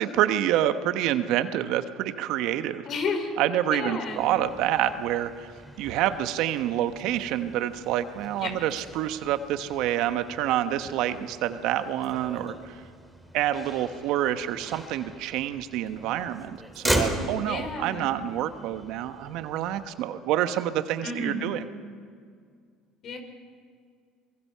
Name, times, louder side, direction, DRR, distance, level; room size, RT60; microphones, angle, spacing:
voice 1, 0.0-2.8 3.4-5.5 5.8-12.8 13.3-21.7, right 12 dB, 70° right, 10 dB, 1.1 m, -27 dB
voice 2, 2.9-3.3 3.7-4.3 8.4-8.5 17.4-18.1 21.0-21.5 23.0-23.2, left 4 dB, 55° left, 5 dB, 4.5 m, -31 dB
Motor vehicle (road), 4.0-19.9, equal, ahead, 4.2 m, -38 dB
24.5 x 22.0 x 5.7 m, 2.1 s
supercardioid pair, 80°, 0 cm